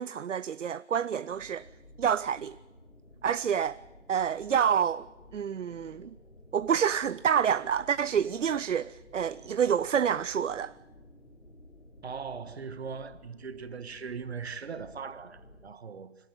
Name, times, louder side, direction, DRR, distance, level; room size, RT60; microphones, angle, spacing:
voice 1, 0.0-1.7 2.0-2.6 3.2-3.8 4.1-5.1 5.3-6.1 6.5-10.7, right 8 dB, 80° right, 0.6 m, -28 dB
sound 1, 1.3-15.7, left 1 dB, 85° left, 3.8 m, -54 dB
voice 2, 12.0-16.2, right 5 dB, 60° right, 1.6 m, -40 dB
23.5 x 13.0 x 9.0 m
figure-of-eight pair, 150°, 36 cm